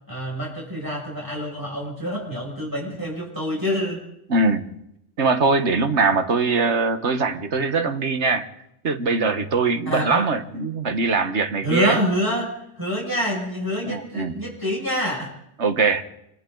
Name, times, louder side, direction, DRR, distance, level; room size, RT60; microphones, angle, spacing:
voice 1, 0.1-4.0 9.9-10.2 11.6-15.3, equal, 15° right, -4 dB, 6.4 m, -26 dB
voice 2, 4.3-4.7 5.2-8.5 8.8-12.0 13.8-14.5 15.6-16.0, right 4 dB, 75° right, 8 dB, 1.7 m, -22 dB
29.0 x 24.5 x 3.9 m, 0.81 s
omnidirectional pair, 1.2 m